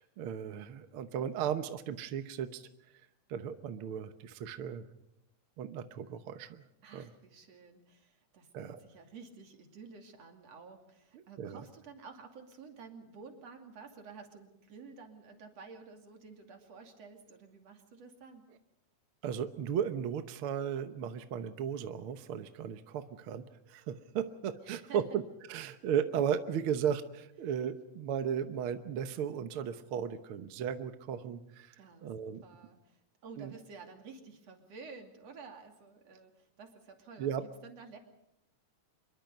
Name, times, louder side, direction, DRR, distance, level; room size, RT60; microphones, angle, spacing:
voice 1, 0.0-2.6 3.3-4.9 5.6-6.6 6.9-7.1 8.5-8.8 11.1-11.6 19.2-25.2 25.5-31.8 32.0-32.4 33.4-33.5 37.2-37.4, right 8 dB, 70° right, 9 dB, 1.3 m, -35 dB
voice 2, 6.8-18.4 24.6-25.0 31.8-38.0, right 5 dB, 50° right, 4 dB, 3.6 m, -52 dB
25.5 x 22.5 x 5.3 m, 0.84 s
omnidirectional pair, 3.8 m